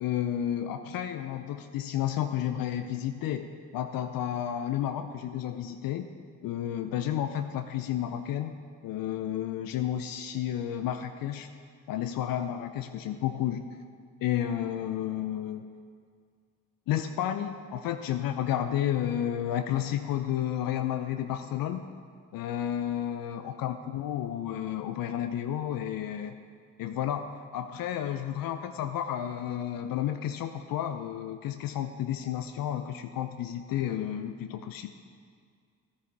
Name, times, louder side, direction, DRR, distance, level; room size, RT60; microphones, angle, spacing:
voice 1, 0.0-6.1 6.4-8.5 8.8-11.5 11.9-13.8 14.2-15.7 16.9-21.8 22.3-26.3 26.8-34.9, left 11 dB, 55° left, 8 dB, 0.6 m, -31 dB
12.5 x 9.8 x 3.5 m, 2.1 s
hypercardioid pair, 40°, 41 cm